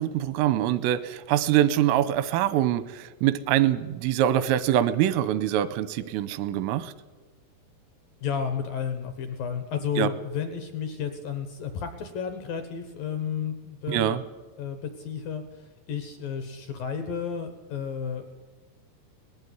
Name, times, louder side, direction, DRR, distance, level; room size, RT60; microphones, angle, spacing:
voice 1, 0.0-6.9 10.0-10.1 13.9-14.2, right 12 dB, 90° right, 15 dB, 3.4 m, -24 dB
voice 2, 8.2-14.2 14.6-18.5, left 7 dB, 70° left, 8 dB, 2.2 m, -32 dB
19.5 x 14.5 x 9.5 m, 1.2 s
omnidirectional pair, 5.7 m